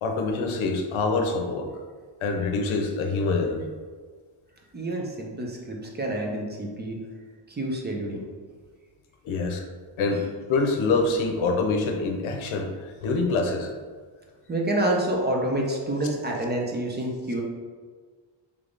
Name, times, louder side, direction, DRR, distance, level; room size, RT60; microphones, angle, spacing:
voice 1, 0.0-1.7 2.2-3.7 9.2-9.6 10.0-10.2 10.5-13.7, left 3 dB, 80° left, 4 dB, 0.7 m, -25 dB
voice 2, 4.7-7.0 7.5-8.2 14.5-17.4, right 1 dB, 20° right, 0 dB, 0.5 m, -28 dB
3.4 x 3.4 x 3.8 m, 1.5 s
wide cardioid pair, 150°, 48 cm